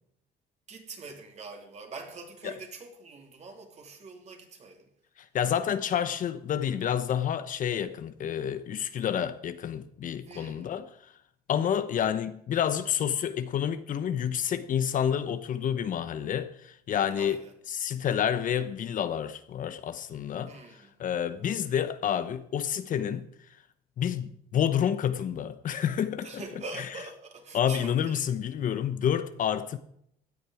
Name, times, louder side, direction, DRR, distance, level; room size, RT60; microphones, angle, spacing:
voice 1, 0.7-4.9 10.2-10.7 17.1-17.5 20.5-20.9 26.2-28.3, right 3 dB, 40° right, 2.9 m, -44 dB
voice 2, 5.2-11.1 11.5-17.4 17.7-20.5 21.0-23.3 24.0-26.4 26.8-26.9 27.5-29.8, left 9 dB, 50° left, 0.9 m, -29 dB
16.5 x 10.0 x 4.9 m
cardioid pair, 110°, 17 cm